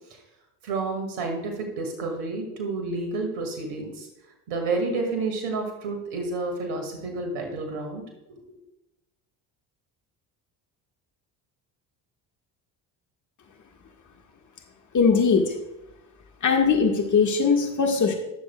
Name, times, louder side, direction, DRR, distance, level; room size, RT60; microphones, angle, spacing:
voice 1, 0.6-4.1 4.5-8.0 8.3-8.4, right 3 dB, 80° right, 3 dB, 2.2 m, -30 dB
voice 2, 14.9-15.5 16.4-18.1, left 5 dB, 35° left, 2 dB, 1.6 m, -20 dB
19.0 x 7.0 x 2.3 m, 0.97 s
hypercardioid pair, 55°, 49 cm